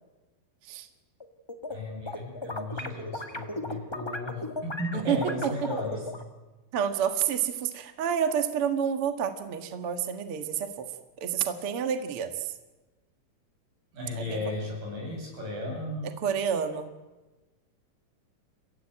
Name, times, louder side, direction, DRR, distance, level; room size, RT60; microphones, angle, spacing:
sound 1, 1.2-1.8 2.1-6.2, left 2 dB, 20° left, 0.6 m, -36 dB
voice 1, 1.7-6.1 13.9-16.1, left 1 dB, 90° right, 0 dB, 9.7 m, -35 dB
voice 2, 4.9-5.5 6.7-10.9 11.2-12.5 14.2-14.5 16.2-16.9, right 8 dB, 50° right, 7 dB, 2.2 m, -29 dB
29.5 x 16.0 x 9.1 m, 1.2 s
omnidirectional pair, 3.7 m